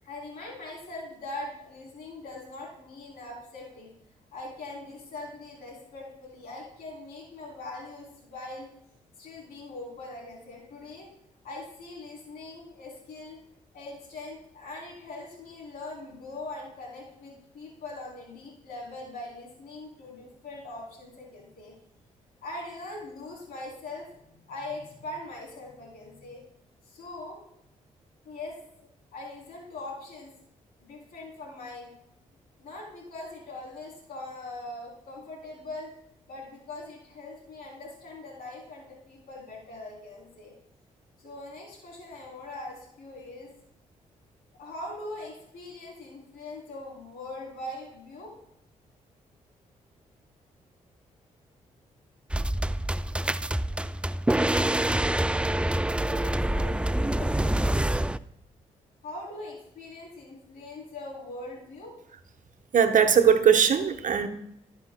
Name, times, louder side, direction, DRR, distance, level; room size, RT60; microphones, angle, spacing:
voice 1, 0.0-3.9 4.3-8.7 9.2-11.1 11.4-13.4 13.7-21.7 22.4-26.4 26.8-27.4 28.2-28.6 29.1-30.3 30.8-31.9 32.6-35.9 36.3-40.5 41.2-43.5 44.6-48.3 55.9-57.9 59.0-61.9, left 2 dB, 70° left, -2 dB, 3.5 m, -41 dB
sound 1, 52.3-58.2, right 1 dB, 5° right, 0.4 m, -26 dB
voice 2, 62.7-64.3, right 7 dB, 55° right, 7 dB, 1.0 m, -20 dB
17.0 x 6.9 x 2.3 m, 0.78 s
hypercardioid pair, 40°, 16 cm